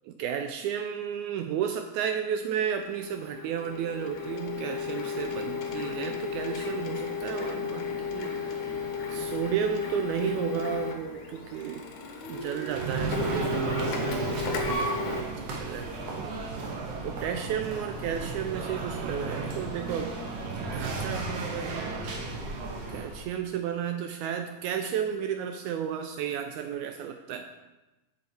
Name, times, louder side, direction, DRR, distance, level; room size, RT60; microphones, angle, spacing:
voice 1, 0.1-8.6 9.1-11.8 12.3-16.3 17.0-20.2 20.6-21.8 22.9-27.5, right 8 dB, 80° right, 6 dB, 1.8 m, -33 dB
Printer, 2.8-15.2, left 4 dB, 75° left, 2.4 m, -34 dB
sound 1, 12.7-23.3, right 3 dB, 60° right, 2.1 m, -34 dB
8.2 x 7.5 x 4.3 m, 1.1 s
omnidirectional pair, 3.8 m